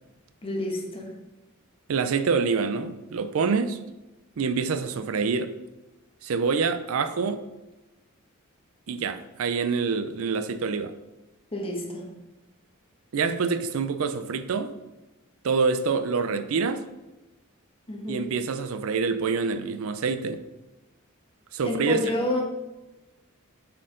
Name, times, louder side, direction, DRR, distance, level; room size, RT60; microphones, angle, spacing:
voice 1, 0.4-1.1 11.5-12.1 17.9-18.4 21.6-22.4, left 1 dB, 25° left, 1 dB, 1.2 m, -29 dB
voice 2, 1.9-3.8 4.4-5.5 6.2-7.4 8.9-10.9 13.1-14.7 15.4-16.8 18.1-20.4 21.5-22.0, right 5 dB, 75° right, 11 dB, 0.5 m, -26 dB
7.5 x 4.5 x 3.8 m, 1.0 s
head